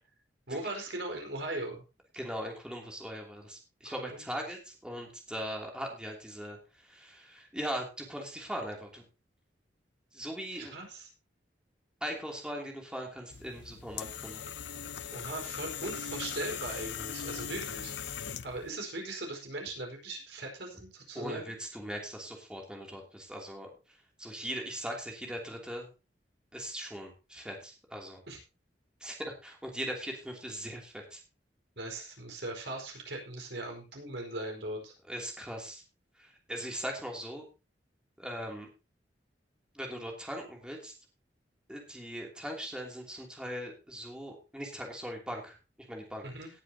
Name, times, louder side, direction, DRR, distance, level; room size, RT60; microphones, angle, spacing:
voice 1, 0.5-1.8 3.8-4.3 10.6-11.1 15.1-17.9 18.4-21.5 28.3-28.4 31.8-34.9 46.2-46.5, right 2 dB, 75° right, 2 dB, 4.8 m, -39 dB
voice 2, 2.1-9.0 10.1-10.8 12.0-14.4 21.1-23.7 24.2-25.9 26.5-28.2 29.0-31.2 35.1-35.8 36.2-37.4 38.2-38.7 39.7-40.9 41.7-45.6 45.9-46.2, equal, 5° right, 0 dB, 2.9 m, -40 dB
sound 1, 13.3-18.7, left 8 dB, 80° left, 0.7 m, -40 dB
18.0 x 10.0 x 2.8 m, 0.30 s
head